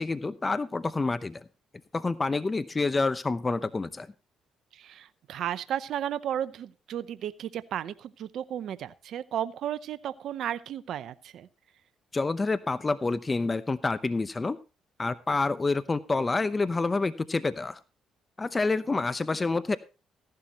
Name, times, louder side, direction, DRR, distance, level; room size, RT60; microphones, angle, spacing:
voice 1, 0.0-1.4 1.9-4.1 12.1-14.6 15.0-17.8 18.4-19.8, left 3 dB, 25° left, 14 dB, 0.7 m, -28 dB
voice 2, 4.7-11.5, right 10 dB, 70° right, 14 dB, 0.7 m, -34 dB
15.0 x 11.5 x 2.9 m, 0.32 s
supercardioid pair, 70°, 0 cm